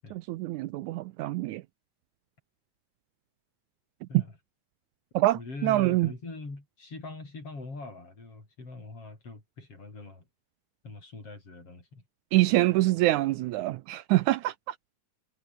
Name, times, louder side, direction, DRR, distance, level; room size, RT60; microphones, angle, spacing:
voice 1, 0.1-1.6 5.1-6.1 12.3-14.8, right 17 dB, 80° right, 1.9 m, -25 dB
voice 2, 5.3-10.2 10.8-12.0, left 3 dB, 45° left, 7.7 m, -42 dB
omnidirectional pair, 3.7 m